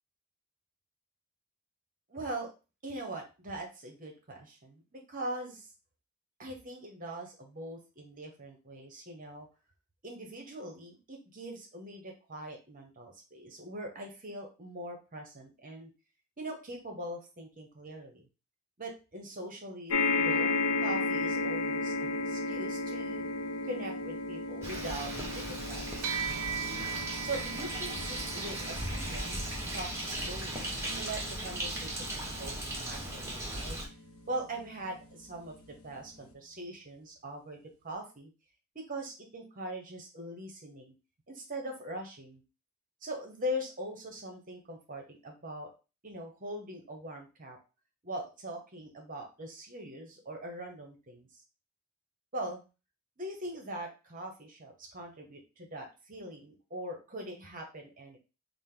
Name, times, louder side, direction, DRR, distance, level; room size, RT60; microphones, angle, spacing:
voice 1, 2.1-2.5 2.8-5.7 6.4-9.5 10.0-15.9 16.4-18.2 18.8-23.2 23.6-26.2 27.2-29.4 29.7-33.8 34.3-38.3 38.7-40.9 41.3-42.4 43.0-45.7 46.0-47.6 48.0-51.4 52.3-52.6 53.2-58.2, right 1 dB, 40° right, 2 dB, 1.0 m, -42 dB
sound 1, 19.9-34.5 35.2-35.3 35.6-35.7, left 3 dB, 90° left, 0.6 m, -35 dB
Bird, 24.6-33.9, right 1 dB, 15° right, 1.2 m, -37 dB
sound 2, 26.0-35.6, right 6 dB, 85° right, 0.5 m, -42 dB
5.0 x 2.1 x 3.8 m, 0.31 s
head